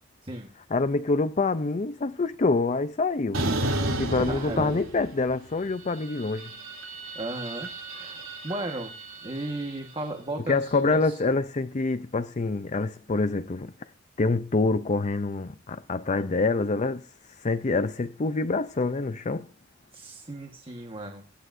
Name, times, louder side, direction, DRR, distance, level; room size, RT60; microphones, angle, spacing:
voice 1, 0.7-3.4 4.0-6.5 10.5-13.7 14.2-19.5, left 3 dB, 35° left, 0.6 m, -26 dB
sound 1, 3.3-5.3 5.6-9.9, right 1 dB, 80° right, 3.2 m, -33 dB
voice 2, 4.2-4.8 7.1-8.9 9.2-11.2 19.9-21.2, right 2 dB, 25° right, 1.5 m, -35 dB
24.0 x 10.0 x 2.7 m
head